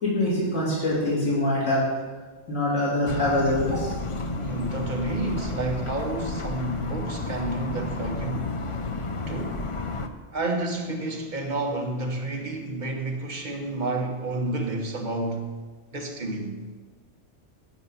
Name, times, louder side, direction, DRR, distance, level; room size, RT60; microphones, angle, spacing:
voice 1, 0.0-1.8 2.5-3.9, left 1 dB, 85° left, 3.0 m, -24 dB
sound 1, 3.1-10.1, left 3 dB, 55° left, 0.3 m, -32 dB
voice 2, 4.3-8.6 9.3-9.6 10.3-15.5 15.9-16.6, right 2 dB, 40° right, 1.1 m, -30 dB
8.0 x 7.0 x 5.5 m
omnidirectional pair, 1.2 m